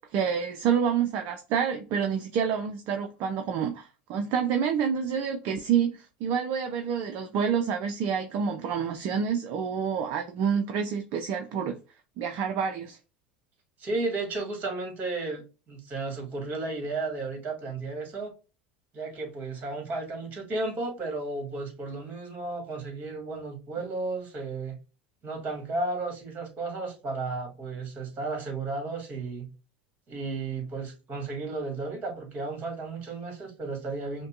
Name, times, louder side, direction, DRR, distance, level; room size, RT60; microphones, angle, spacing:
voice 1, 0.1-11.8 12.2-13.0, right 7 dB, 55° right, 0.6 m, -28 dB
voice 2, 13.8-18.3 18.9-24.8 25.2-29.5 30.1-34.3, right 3 dB, 35° right, 2.0 m, -33 dB
5.2 x 2.3 x 2.4 m
hypercardioid pair, 85°, 5 cm